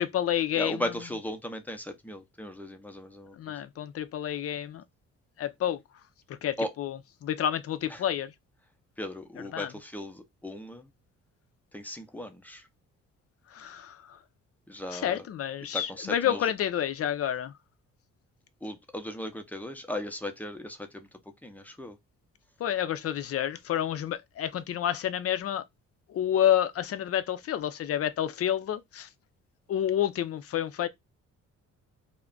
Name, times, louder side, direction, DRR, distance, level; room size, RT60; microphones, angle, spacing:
voice 1, 0.0-0.8 3.4-4.8 5.4-5.8 6.3-8.3 9.5-9.7 13.5-14.2 14.9-17.5 22.6-25.6 26.1-29.1 29.7-30.9, left 10 dB, 50° left, 0.5 m, -29 dB
voice 2, 0.5-3.6 6.6-6.7 7.9-8.0 9.0-10.9 11.7-12.7 14.7-15.2 15.7-16.4 18.6-21.1 21.4-22.0, left 1 dB, 5° left, 0.6 m, -37 dB
2.3 x 2.1 x 3.6 m
cardioid pair, 90°, 30 cm